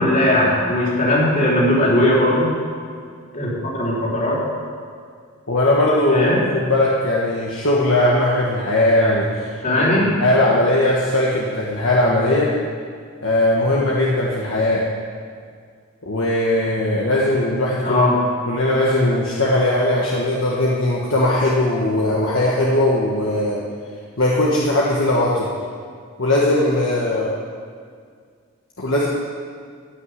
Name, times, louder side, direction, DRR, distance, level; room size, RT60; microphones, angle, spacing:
voice 1, 0.0-2.5 3.3-4.4 6.1-6.4 9.6-10.1 17.8-18.2, left 1 dB, 35° left, -6 dB, 3.7 m, -18 dB
voice 2, 5.5-12.5 13.2-14.8 16.0-18.1 18.5-23.6 24.2-25.5 26.2-27.3 28.8-29.1, left 1 dB, 60° left, -5 dB, 1.5 m, -19 dB
14.5 x 6.2 x 9.7 m, 2.1 s
head